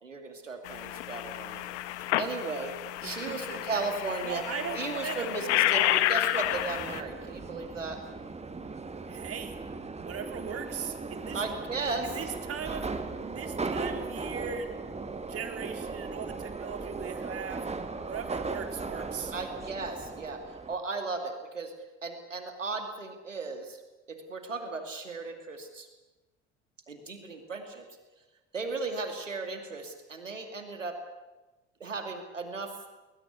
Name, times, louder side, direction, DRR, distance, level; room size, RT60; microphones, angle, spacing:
voice 1, 0.0-1.7 2.2-2.7 3.0-4.4 4.7-8.0 11.3-12.1 19.3-20.4 20.7-21.7 22.0-23.8 24.1-25.9 26.9-27.8 28.5-30.9 31.8-32.7, right 3 dB, 90° right, 6 dB, 2.5 m, -36 dB
sound 1, 0.6-7.0, left 15 dB, 65° left, 1.3 m, -30 dB
voice 2, 3.0-3.8 4.2-6.1 9.1-9.6 10.0-11.4 12.0-14.8 15.3-17.7 18.0-19.3, right 7 dB, 40° right, 6 dB, 3.8 m, -39 dB
Subway metro underground, 6.4-20.7, right 3 dB, 15° right, 2.2 m, -38 dB
21.0 x 20.5 x 9.6 m, 1.1 s
figure-of-eight pair, 65°, 37 cm